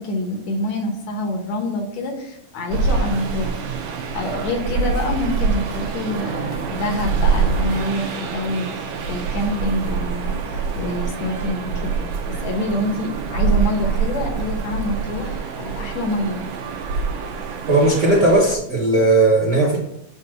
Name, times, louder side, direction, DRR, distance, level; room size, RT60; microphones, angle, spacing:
voice 1, 0.0-3.6 4.1-12.0 12.3-16.5, left 1 dB, 65° left, 2 dB, 2.1 m, -26 dB
sound 1, 2.7-18.6, right 5 dB, 90° right, 2.2 m, -25 dB
voice 2, 17.7-19.8, right 2 dB, 40° right, -4 dB, 1.4 m, -16 dB
8.0 x 2.7 x 6.0 m, 0.74 s
omnidirectional pair, 3.5 m